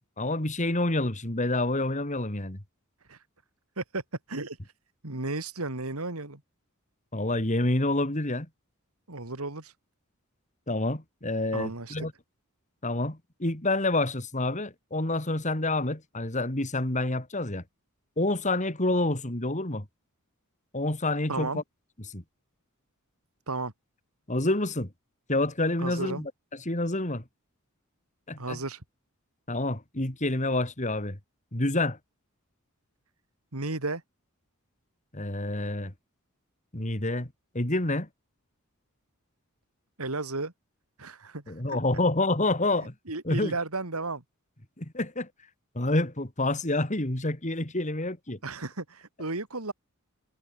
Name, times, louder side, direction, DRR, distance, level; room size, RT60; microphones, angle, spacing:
voice 1, 0.2-2.6 7.1-8.5 10.7-12.1 12.8-17.6 18.2-19.8 20.7-21.6 22.0-22.2 24.3-24.9 25.3-27.2 28.3-28.6 29.5-31.2 31.5-32.0 35.1-35.9 36.7-38.1 41.5-42.9 43.2-43.5 44.8-45.3 45.7-48.4, left 2 dB, 35° left, 2.9 m, -28 dB
voice 2, 4.3-4.7 5.0-6.4 9.1-9.7 11.5-12.1 21.3-21.6 23.5-23.7 25.8-26.2 28.4-28.8 33.5-34.0 40.0-40.5 41.0-41.8 43.1-44.2 48.4-49.7, right 3 dB, 85° right, 3.0 m, -34 dB
head